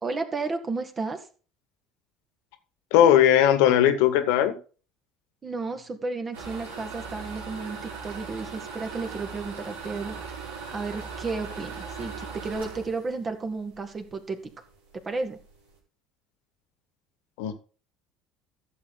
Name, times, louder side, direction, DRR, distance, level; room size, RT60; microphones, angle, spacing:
voice 1, 0.0-1.3 5.4-14.5 14.9-15.4, right 3 dB, 30° right, 6 dB, 2.2 m, -33 dB
voice 2, 2.9-4.6 17.4-17.6, left 10 dB, 65° left, 10 dB, 1.6 m, -19 dB
sound 1, 6.3-14.1 14.5-14.6 15.0-15.1 15.3-15.7, right 5 dB, 80° right, 4.6 m, -39 dB
14.5 x 7.1 x 4.0 m, 0.37 s
figure-of-eight pair, 65°, 0 cm